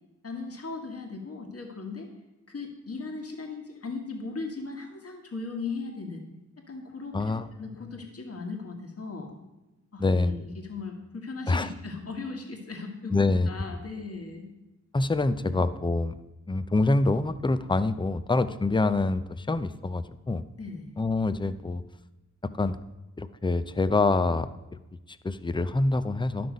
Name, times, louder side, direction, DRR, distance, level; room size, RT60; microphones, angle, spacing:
voice 1, 0.2-2.1 2.5-6.2 6.7-9.3 9.9-10.4 10.7-14.5 15.5-15.6 20.6-20.9, left 4 dB, 50° left, 3 dB, 1.6 m, -37 dB
voice 2, 7.1-7.5 10.0-10.3 11.5-11.7 13.1-13.5 14.9-16.2 16.5-20.4 21.0-21.8 22.6-22.8 23.2-24.8 25.1-26.5, left 3 dB, 15° left, 13 dB, 0.5 m, -26 dB
11.5 x 6.0 x 5.2 m, 1.0 s
wide cardioid pair, 70°, 30 cm